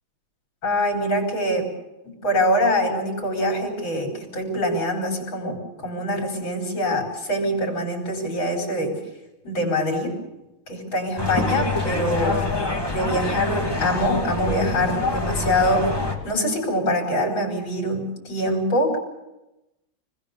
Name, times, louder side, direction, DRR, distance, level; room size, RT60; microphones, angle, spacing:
voice 1, 0.6-1.7 2.0-9.0 9.4-10.1 10.7-12.4 12.9-19.0, equal, 75° left, 1 dB, 5.5 m, -24 dB
sound 1, 11.2-16.2, left 3 dB, 10° left, 2.6 m, -26 dB
27.0 x 20.5 x 6.7 m, 0.97 s
omnidirectional pair, 2.2 m